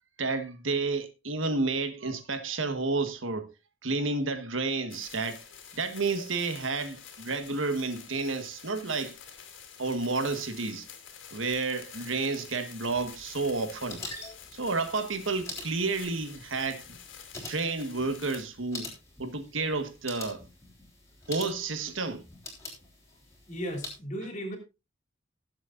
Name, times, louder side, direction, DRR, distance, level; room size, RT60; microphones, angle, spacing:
voice 1, 0.2-3.5 3.8-5.4 5.7-9.2 9.8-10.9 11.3-14.0 14.5-17.0 17.5-18.9 19.2-20.4 21.3-22.2, right 3 dB, 85° right, 1.6 m, -31 dB
sound 1, 4.9-18.4, left 7 dB, 85° left, 2.9 m, -48 dB
sound 2, 12.8-24.0, left 2 dB, 15° left, 3.7 m, -45 dB
voice 2, 23.5-24.6, equal, 40° left, 3.1 m, -35 dB
19.0 x 7.7 x 2.6 m
head